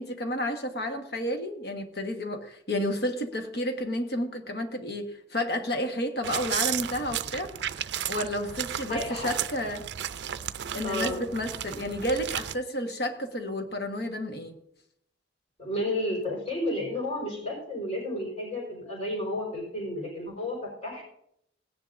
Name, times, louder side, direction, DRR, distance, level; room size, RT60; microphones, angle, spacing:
voice 1, 0.0-7.5 8.1-9.8 10.7-14.5, left 1 dB, 55° left, 1.3 m, -31 dB
sound 1, 6.2-12.5, right 10 dB, 65° right, 0.5 m, -34 dB
voice 2, 8.9-9.3 10.8-11.2 15.6-21.0, left 1 dB, 35° left, 4.6 m, -32 dB
17.5 x 10.0 x 2.6 m
head